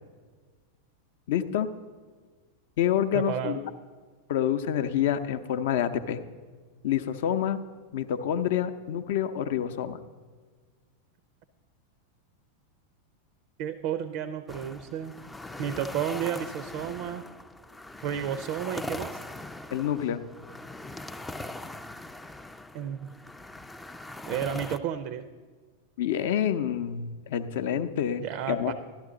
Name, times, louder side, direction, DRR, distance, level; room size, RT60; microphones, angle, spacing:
voice 1, 1.3-1.7 2.8-3.7 4.3-6.2 6.8-7.6 7.9-10.0 19.7-20.2 26.0-28.7, left 9 dB, 55° left, 11 dB, 0.6 m, -27 dB
voice 2, 3.1-3.6 13.6-15.1 15.6-17.2 18.0-19.2 22.7-23.1 24.3-25.3 28.2-28.7, right 9 dB, 45° right, 13 dB, 0.5 m, -32 dB
sound 1, 14.5-24.8, left 2 dB, 5° left, 0.4 m, -41 dB
12.0 x 12.0 x 3.8 m, 1.5 s
figure-of-eight pair, 90°, 0 cm